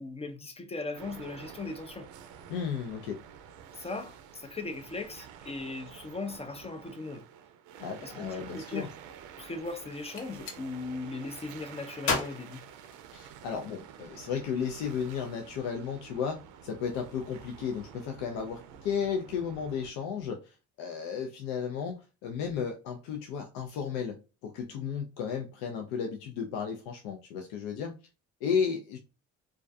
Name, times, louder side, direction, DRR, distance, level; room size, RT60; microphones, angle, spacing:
voice 1, 0.0-2.1 3.7-7.2 8.0-8.9 9.4-12.6, left 3 dB, 20° left, 0.3 m, -38 dB
sound 1, 0.9-19.9, right 8 dB, 75° right, 0.5 m, -49 dB
voice 2, 2.5-3.2 7.8-8.9 13.1-27.9 28.4-29.0, left 7 dB, 80° left, 0.5 m, -34 dB
Gunshot gunfire, 10.1-10.6 12.0-13.5, left 4 dB, 60° left, 0.8 m, -34 dB
2.3 x 2.2 x 2.5 m
supercardioid pair, 70°, 31 cm